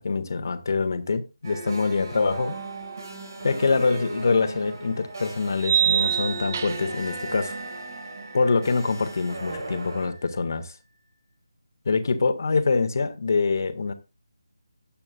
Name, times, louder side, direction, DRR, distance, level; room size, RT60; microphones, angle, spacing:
voice 1, 0.0-2.6 3.4-7.6 8.3-10.7 11.8-13.9, left 4 dB, 50° left, 1.6 m, -25 dB
sound 1, 1.4-10.1, right 2 dB, 50° right, 5.4 m, -37 dB
sound 2, 3.8-10.6, right 1 dB, 80° right, 6.8 m, -46 dB
sound 3, 3.9-4.0 5.6-7.0, right 9 dB, 35° right, 0.5 m, -24 dB
19.0 x 8.7 x 2.3 m
figure-of-eight pair, 160°, 2 cm